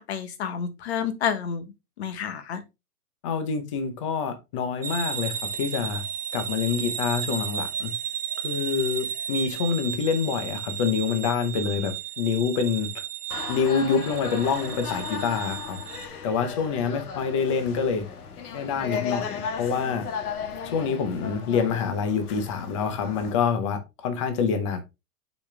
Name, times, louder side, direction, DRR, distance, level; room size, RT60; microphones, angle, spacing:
voice 1, 0.0-1.7 2.0-2.6, left 7 dB, 45° left, 1.2 m, -29 dB
voice 2, 3.2-6.0 6.3-7.9 8.4-12.9 13.5-15.8 16.2-18.0 18.5-20.0 20.7-24.8, left 6 dB, 20° left, 0.7 m, -26 dB
sound 1, 4.8-16.1, right 8 dB, 80° right, 1.1 m, -34 dB
sound 2, 13.3-23.3, left 6 dB, 70° left, 1.6 m, -35 dB
6.1 x 5.2 x 3.3 m
hypercardioid pair, 170°, 47 cm